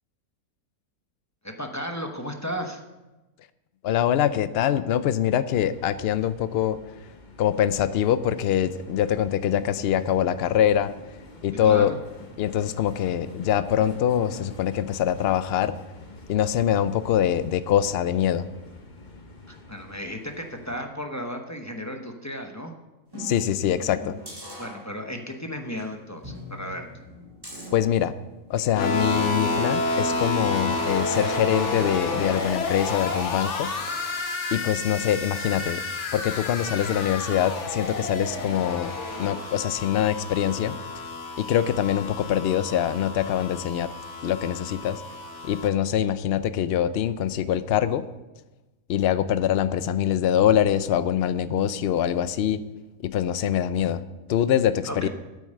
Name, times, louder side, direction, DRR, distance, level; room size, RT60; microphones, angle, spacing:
voice 1, 1.4-2.8 11.6-12.0 19.5-22.7 24.6-26.9 54.9-55.1, equal, 15° left, 3 dB, 0.8 m, -34 dB
voice 2, 3.8-6.8 7.4-10.9 11.4-11.9 12.4-15.8 16.3-18.5 23.2-24.2 27.7-28.1 28.5-33.7 34.0-34.1 34.5-35.8 36.1-38.9 39.2-40.8 41.4-43.9 44.2-45.0 45.4-48.1 48.9-52.6 53.0-54.0 54.3-55.1, left 10 dB, 70° left, 14 dB, 0.6 m, -24 dB
sound 1, 5.5-20.8, left 2 dB, 35° left, 1.1 m, -47 dB
sound 2, 23.1-25.3 25.7-25.8 26.2-28.7 29.4-31.6 32.0-32.1, equal, 15° right, 3.7 m, -42 dB
sound 3, 28.7-45.7, left 2 dB, 50° left, 1.4 m, -30 dB
9.3 x 8.6 x 6.5 m, 1.1 s
omnidirectional pair, 1.6 m